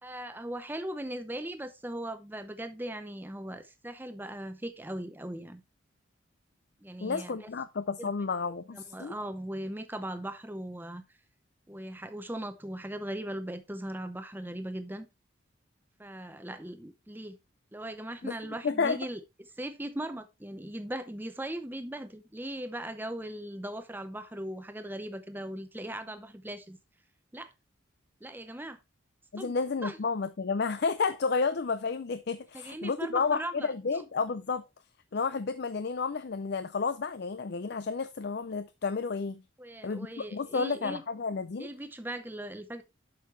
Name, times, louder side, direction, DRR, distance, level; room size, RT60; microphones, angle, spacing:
voice 1, 0.0-5.6 6.8-7.4 8.0-8.1 8.7-11.0 11.7-15.1 16.0-17.4 17.7-19.2 19.6-26.8 27.3-27.5 28.2-28.8 29.4-29.5 29.8-30.0 32.5-33.7 39.6-41.0 41.6-42.8, right 1 dB, 10° right, 0.7 m, -39 dB
voice 2, 7.0-9.2 18.2-18.3 18.6-19.0 29.3-34.6 35.1-39.4 39.8-41.7, left 4 dB, 55° left, 0.5 m, -31 dB
8.3 x 6.5 x 3.1 m
head